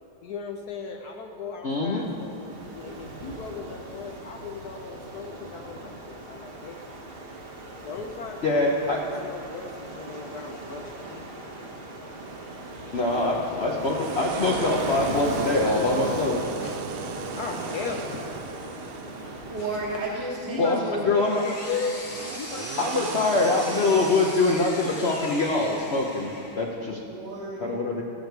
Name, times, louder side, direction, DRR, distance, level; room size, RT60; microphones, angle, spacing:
voice 1, 0.2-6.8 7.8-11.4 13.1-13.8 16.6-18.4 19.6-19.7 20.5-22.0 22.3-23.0 23.4-24.2 24.5-25.6, left 5 dB, 70° left, 3 dB, 0.9 m, -37 dB
voice 2, 1.6-2.0 8.4-9.0 12.9-16.4 20.6-20.8 21.0-21.4 22.8-27.0 27.6-28.0, left 2 dB, 85° left, -2 dB, 0.5 m, -24 dB
Ocean, 1.9-21.0, right 2 dB, 40° right, 0.8 m, -37 dB
sound 1, 12.2-24.6, right 8 dB, 85° right, 1.5 m, -40 dB
voice 3, 19.5-21.3 27.1-27.8, right 2 dB, 60° right, -6 dB, 1.7 m, -32 dB
Power tool, 20.7-26.8, left 1 dB, 25° left, 1.3 m, -39 dB
15.5 x 6.6 x 4.6 m, 2.5 s
omnidirectional pair, 2.3 m